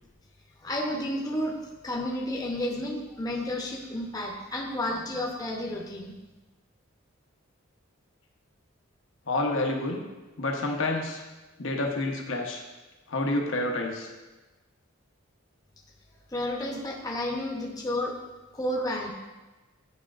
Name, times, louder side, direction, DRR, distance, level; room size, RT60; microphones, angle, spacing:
voice 1, 0.6-1.6 1.8-6.1 16.3-18.2 18.5-19.1, left 1 dB, 20° left, -1 dB, 0.8 m, -31 dB
voice 2, 9.3-10.0 10.4-11.2 11.6-12.6 13.1-14.1, left 2 dB, 65° left, 2 dB, 0.9 m, -28 dB
9.6 x 5.0 x 2.5 m, 1.2 s
head